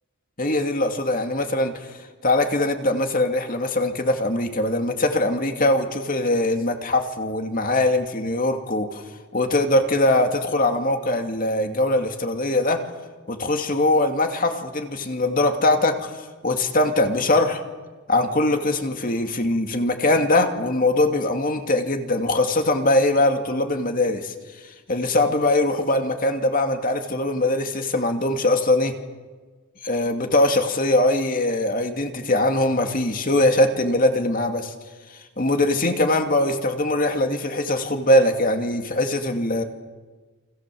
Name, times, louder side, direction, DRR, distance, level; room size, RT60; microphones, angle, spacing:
voice 1, 0.4-1.9 2.2-9.0 9.3-12.8 13.3-16.1 16.4-17.6 18.1-24.3 24.9-29.0 29.8-34.7 35.4-39.6, left 1 dB, 40° left, 5 dB, 2.6 m, -21 dB
29.0 x 26.5 x 7.8 m, 1.3 s
head